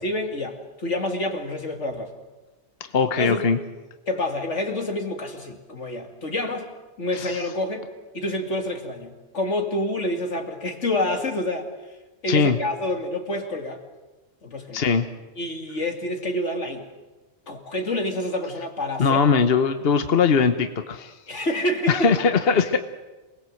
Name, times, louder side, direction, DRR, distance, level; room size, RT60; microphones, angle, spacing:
voice 1, 0.0-2.1 3.2-3.5 4.1-6.7 7.0-7.9 8.1-11.7 12.2-13.8 14.4-14.9 15.4-16.9 17.5-19.2 21.3-22.1, left 1 dB, 85° left, 4 dB, 2.9 m, -28 dB
voice 2, 2.9-3.6 7.2-7.4 12.3-12.6 14.7-15.1 19.0-21.1 21.9-22.8, left 5 dB, 60° left, 8 dB, 1.3 m, -20 dB
27.5 x 20.0 x 7.8 m, 1.1 s
omnidirectional pair, 1.2 m